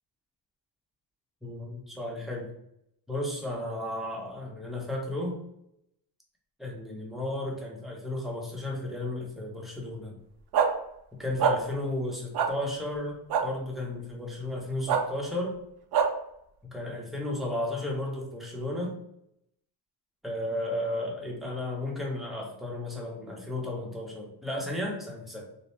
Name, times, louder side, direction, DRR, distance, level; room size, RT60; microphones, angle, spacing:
voice 1, 1.4-2.5 3.1-5.4 6.6-10.2 11.2-15.5 16.7-19.0 20.2-25.5, left 1 dB, ahead, -2 dB, 0.7 m, -34 dB
sound 1, 10.5-10.7 11.4-11.5 12.3-12.5 13.3-13.4 14.9-15.0 15.9-16.1, right 7 dB, 70° right, 0.5 m, -23 dB
2.7 x 2.0 x 3.1 m, 0.76 s
cardioid pair, 100°, 41 cm